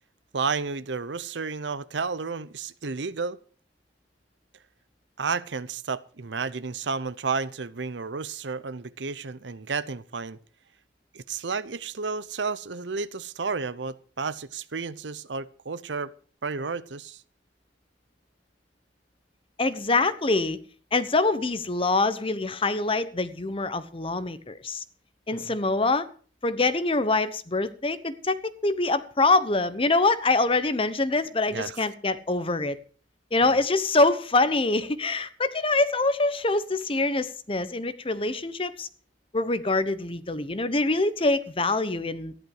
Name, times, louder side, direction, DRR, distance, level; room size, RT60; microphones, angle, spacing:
voice 1, 0.3-3.4 5.2-10.4 11.1-16.1 16.4-17.2 25.3-25.5 31.5-31.8 33.4-33.6, right 4 dB, 80° right, 0.8 m, -32 dB
voice 2, 19.6-20.6 20.9-24.8 25.3-26.1 26.4-32.8 33.3-38.9 39.3-42.3, left 3 dB, 30° left, 1.0 m, -25 dB
14.5 x 11.0 x 4.9 m
head